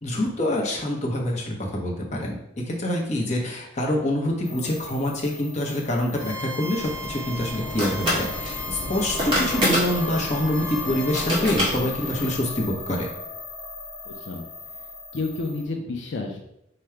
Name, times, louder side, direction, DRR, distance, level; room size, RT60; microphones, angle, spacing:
voice 1, 0.0-2.4 2.7-13.1, left 1 dB, 35° left, -1 dB, 0.8 m, -26 dB
sound 1, 4.4-15.6, left 3 dB, 85° left, 0.9 m, -37 dB
Bowed string instrument, 6.1-11.3, equal, 45° right, 1.4 m, -38 dB
sound 2, 6.8-12.3, equal, 25° right, 1.6 m, -28 dB
voice 2, 14.0-14.4 15.1-16.4, left 3 dB, 70° left, 1 dB, 0.5 m, -30 dB
4.8 x 2.2 x 4.4 m, 0.80 s
head